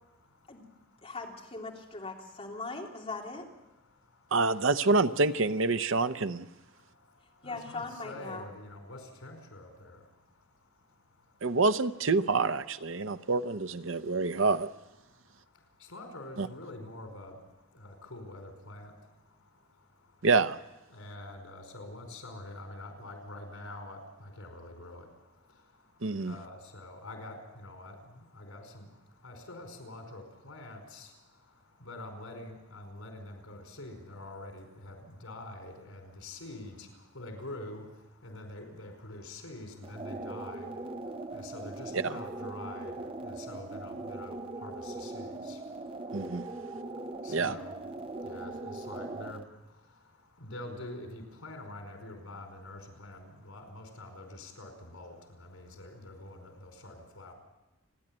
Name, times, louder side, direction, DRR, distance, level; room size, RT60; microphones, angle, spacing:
voice 1, 1.0-3.5 7.4-8.5, left 3 dB, 30° left, -1 dB, 3.2 m, -40 dB
voice 2, 4.3-6.5 11.4-14.7 16.4-16.5 20.2-20.6 26.0-26.4 41.9-42.2 46.1-46.4 47.3-47.6, right 3 dB, 65° right, 11 dB, 0.8 m, -27 dB
voice 3, 7.3-10.0 15.8-17.4 17.7-18.9 20.9-25.1 26.2-28.9 29.2-31.1 31.8-36.9 37.1-37.9 38.2-40.7 41.3-45.6 47.2-47.8 48.2-49.4 50.4-57.3, left 1 dB, 90° left, 4 dB, 4.9 m, -45 dB
sound 1, 39.8-49.4, right 2 dB, 25° right, 0.7 m, -40 dB
29.0 x 11.0 x 8.9 m, 1.0 s
head